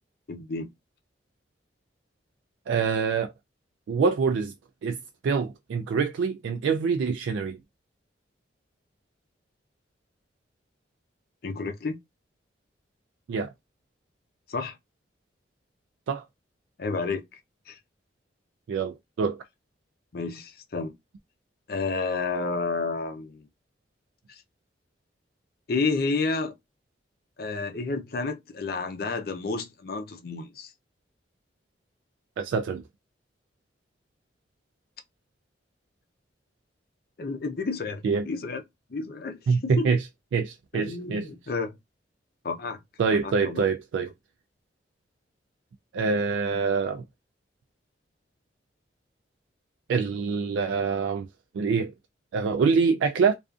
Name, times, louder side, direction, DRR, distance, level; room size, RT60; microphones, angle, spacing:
voice 1, 0.3-0.7 11.4-12.0 14.5-14.8 16.8-17.2 17.7-17.8 20.1-20.9 21.7-23.5 24.3-24.4 25.7-26.5 27.4-30.7 37.2-38.6 38.9-39.9 40.7-41.8 42.4-42.8 43.1-43.6, left 3 dB, 55° left, 0.5 m, -30 dB
voice 2, 2.7-3.3 3.9-4.5 4.8-5.0 5.2-7.6 13.3-13.5 16.1-16.2 18.7-19.4 32.4-32.8 38.0-38.3 39.5-40.1 40.3-41.3 43.0-44.1 45.9-47.0 49.9-51.3 51.5-51.9 52.3-53.3, right 5 dB, 90° right, 0.3 m, -25 dB
2.4 x 2.3 x 2.4 m
head